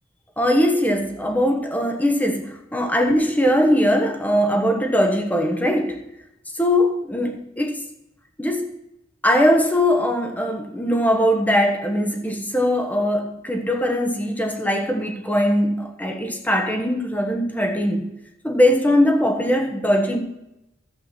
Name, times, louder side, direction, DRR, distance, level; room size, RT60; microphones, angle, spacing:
voice 1, 0.4-6.0 6.5-7.8 8.4-8.7 9.2-18.1 18.4-20.2, equal, 10° left, 4 dB, 1.2 m, -20 dB
12.0 x 7.7 x 4.4 m, 0.88 s
head